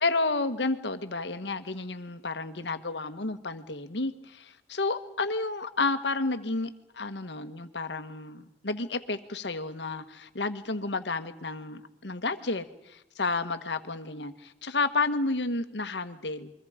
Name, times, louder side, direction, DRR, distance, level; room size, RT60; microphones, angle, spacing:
voice 1, 0.0-16.5, left 3 dB, 85° left, 10 dB, 1.4 m, -31 dB
29.5 x 23.0 x 5.1 m, 0.87 s
head